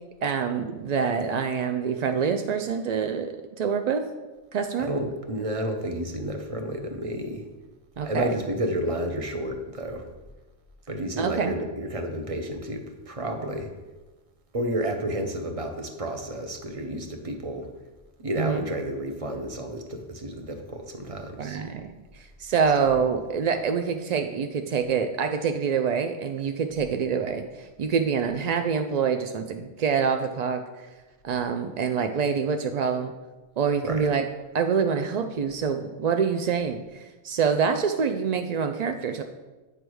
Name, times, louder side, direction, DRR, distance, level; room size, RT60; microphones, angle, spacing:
voice 1, 0.2-3.3 3.6-4.0 4.5-4.9 8.0-8.3 11.2-11.5 18.4-18.7 21.4-30.9 31.2-33.1 33.6-34.2 34.5-39.2, right 6 dB, 65° right, 6 dB, 0.4 m, -26 dB
voice 2, 4.8-7.4 8.0-10.1 10.9-13.7 14.5-17.7 18.2-21.6 33.8-34.1, right 1 dB, 35° right, 4 dB, 0.8 m, -31 dB
8.7 x 3.4 x 6.1 m, 1.2 s
omnidirectional pair, 1.2 m